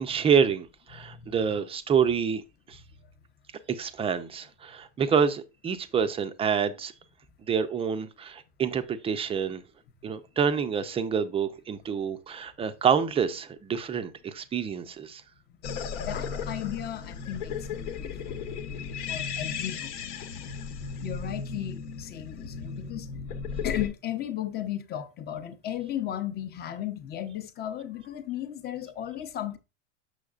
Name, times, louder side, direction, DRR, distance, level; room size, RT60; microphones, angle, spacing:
voice 1, 0.0-2.8 3.7-6.9 7.5-9.6 10.0-15.2, right 7 dB, 15° right, 0.5 m, -27 dB
voice 2, 0.9-1.3 2.8-3.1 15.5-15.6 16.0-19.9 21.0-23.1 23.6-29.6, left 11 dB, 25° left, 0.7 m, -36 dB
sound 1, 15.6-23.9, left 6 dB, 65° left, 1.0 m, -35 dB
6.5 x 6.3 x 2.4 m
hypercardioid pair, 115°, 37 cm